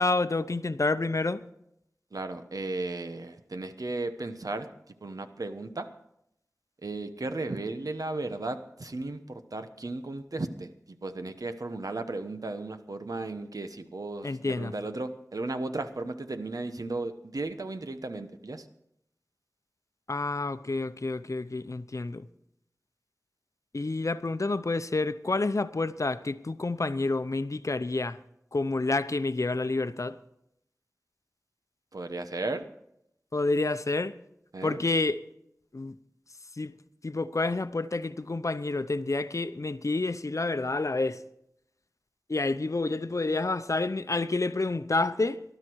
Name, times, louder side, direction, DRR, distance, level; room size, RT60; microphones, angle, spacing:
voice 1, 0.0-1.4 14.2-14.7 20.1-22.3 23.7-28.2 28.5-30.2 33.3-34.1 34.6-35.2 35.7-36.0 36.6-36.7 37.0-41.2 42.3-45.4, left 3 dB, 60° left, 0.7 m, -29 dB
voice 2, 2.1-4.7 5.0-5.9 6.8-10.7 11.0-18.6 31.9-32.6 34.5-34.8, right 2 dB, 75° right, 1.1 m, -35 dB
19.0 x 12.0 x 4.6 m
wide cardioid pair, 45°, 6 cm